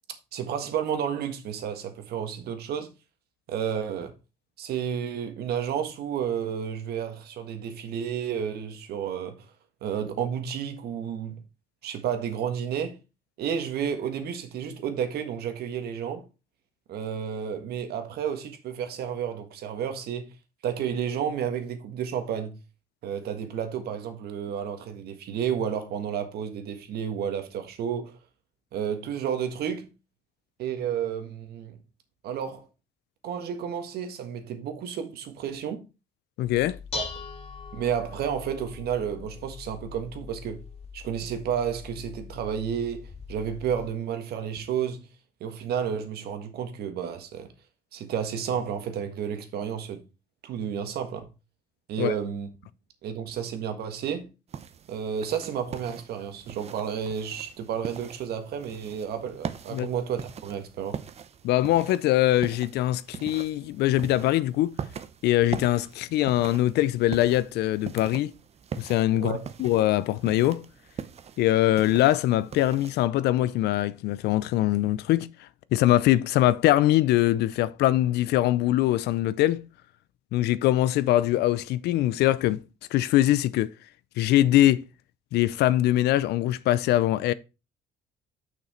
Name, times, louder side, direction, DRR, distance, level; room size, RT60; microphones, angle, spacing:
voice 1, 0.3-2.9 3.5-4.1 4.6-9.4 9.8-11.4 11.8-13.0 13.4-16.2 16.9-20.3 20.6-22.5 23.0-28.2 28.7-29.9 30.6-31.8 32.2-32.7 33.2-35.8 36.9-37.1 37.7-40.6 40.9-45.1 45.4-47.5 47.9-50.0 50.4-51.3 51.9-52.5 53.0-54.3 54.9-61.0 69.2-69.4, right 8 dB, 70° right, 1.6 m, -31 dB
voice 2, 36.4-36.8 52.0-52.1 59.7-59.9 61.4-64.8 65.2-68.3 68.8-69.3 69.6-70.6 71.4-79.6 80.3-82.6 82.9-83.7 84.2-84.8 85.3-87.3, left 14 dB, 75° left, 0.5 m, -23 dB
Dishes pots and pans, 36.5-43.9, left 4 dB, 35° left, 1.8 m, -41 dB
sound 1, 54.5-73.1, right 7 dB, 40° right, 0.7 m, -42 dB
6.3 x 6.0 x 4.3 m
cardioid pair, 110°, 17 cm